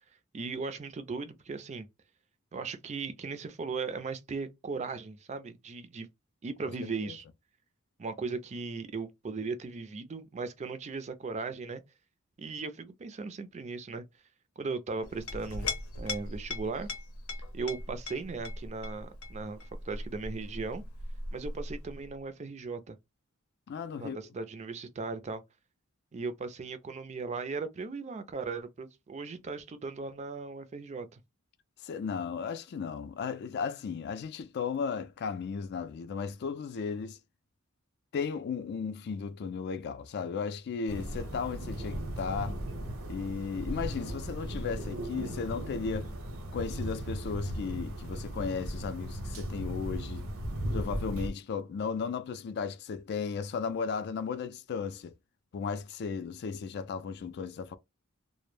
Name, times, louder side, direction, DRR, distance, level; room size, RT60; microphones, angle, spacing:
voice 1, 0.3-1.9 2.5-6.1 6.4-7.2 8.0-11.8 12.4-14.0 14.6-15.7 16.0-16.9 17.5-19.6 19.8-20.8 21.3-23.0 24.0-25.4 26.1-31.2, right 4 dB, 35° right, 0.4 m, -37 dB
voice 2, 6.8-7.2 23.7-24.2 31.8-37.2 38.1-42.6 43.1-46.1 46.5-50.3 50.7-55.1 55.5-57.8, left 5 dB, 50° left, 0.3 m, -35 dB
Chink clink, 15.0-22.1, left 2 dB, 85° left, 0.7 m, -39 dB
sound 1, 40.9-51.3, right 1 dB, 80° right, 0.7 m, -37 dB
2.1 x 2.0 x 3.1 m
head